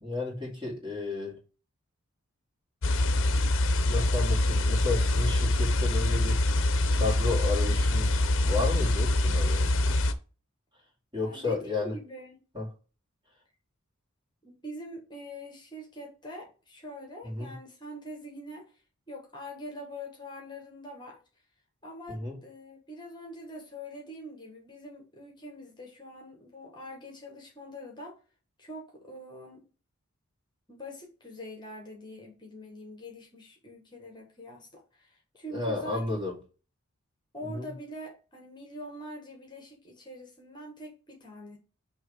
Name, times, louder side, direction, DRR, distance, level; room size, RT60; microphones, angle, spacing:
voice 1, 0.0-1.4 3.8-6.4 6.9-9.7 11.1-11.9 12.5-12.7 17.2-17.5 22.1-22.4 35.5-36.4 37.4-37.7, left 3 dB, 20° right, 2.4 m, -32 dB
sound 1, 2.8-10.1, left 1 dB, 60° left, 0.7 m, -25 dB
voice 2, 11.2-12.4 14.4-18.7 19.1-21.2 21.8-28.2 28.6-29.6 30.7-36.3 37.3-41.6, equal, 20° left, 1.5 m, -44 dB
6.3 x 3.1 x 4.9 m
head